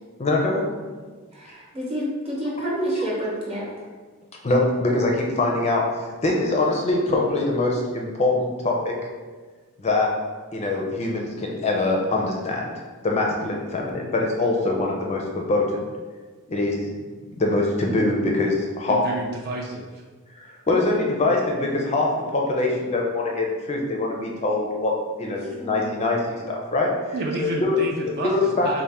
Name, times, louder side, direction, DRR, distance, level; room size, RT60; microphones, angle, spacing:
voice 1, 0.2-0.7 4.4-9.0 9.8-10.1 10.5-12.7 13.0-15.7 16.5-16.8 17.4-19.0 20.4-24.9 25.2-27.8 28.2-28.7, left 2 dB, 30° left, -1 dB, 0.4 m, -23 dB
voice 2, 1.3-3.6 25.6-25.8, right 1 dB, 30° right, -5 dB, 0.9 m, -28 dB
voice 3, 18.9-19.8 27.1-28.8, right 2 dB, 45° right, -1 dB, 0.4 m, -30 dB
4.1 x 2.1 x 3.4 m, 1.4 s
head